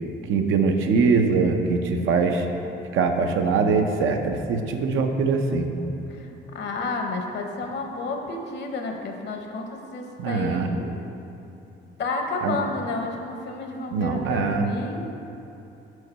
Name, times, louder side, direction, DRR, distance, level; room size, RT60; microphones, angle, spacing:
voice 1, 0.3-2.5 2.9-5.7 10.2-10.7 12.4-12.6 13.9-14.7, right 4 dB, 80° right, 4 dB, 0.6 m, -22 dB
voice 2, 6.1-10.9 12.0-15.0, left 3 dB, 60° left, 3 dB, 0.9 m, -31 dB
5.1 x 4.8 x 5.4 m, 2.8 s
cardioid pair, 90°, 20 cm